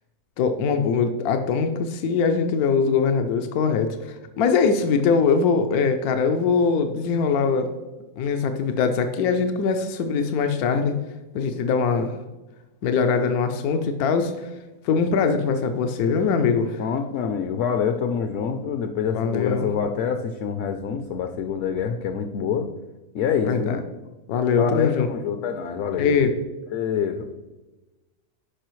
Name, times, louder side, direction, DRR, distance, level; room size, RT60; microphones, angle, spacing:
voice 1, 0.4-7.7 8.2-11.0 11.3-12.2 12.8-14.5 14.8-16.8 19.1-19.7 23.4-23.8 24.3-25.1 26.0-26.4, left 5 dB, 85° left, 7 dB, 1.1 m, -22 dB
voice 2, 16.8-22.7 23.1-23.8 24.6-26.3 26.7-27.3, left 7 dB, 65° left, 7 dB, 0.8 m, -26 dB
11.5 x 4.8 x 3.1 m, 1.1 s
omnidirectional pair, 1.6 m